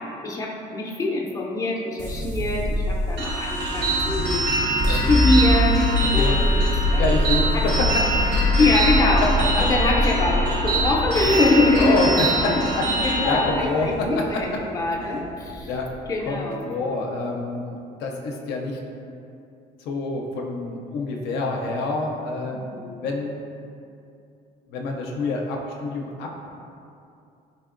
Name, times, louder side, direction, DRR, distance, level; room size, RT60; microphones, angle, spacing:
voice 1, 0.2-4.4 4.9-7.1 7.5-7.6 8.6-9.2 9.6-12.0 12.4-12.6 13.0-15.7 16.1-16.7 22.5-22.9, left 2 dB, 20° left, -2 dB, 0.4 m, -23 dB
sound 1, 2.0-16.2, left 1 dB, 45° right, 0.7 m, -24 dB
sound 2, 3.2-13.5, right 2 dB, 75° right, 0.8 m, -25 dB
voice 2, 7.0-7.9 8.2-8.4 9.6-9.7 11.8-14.4 15.0-15.1 15.6-16.0 16.2-18.8 19.8-22.6 23.0-23.4 24.7-26.3, left 3 dB, 80° left, 0 dB, 0.4 m, -27 dB
4.0 x 2.8 x 2.5 m, 2.6 s
cardioid pair, 110°, 17 cm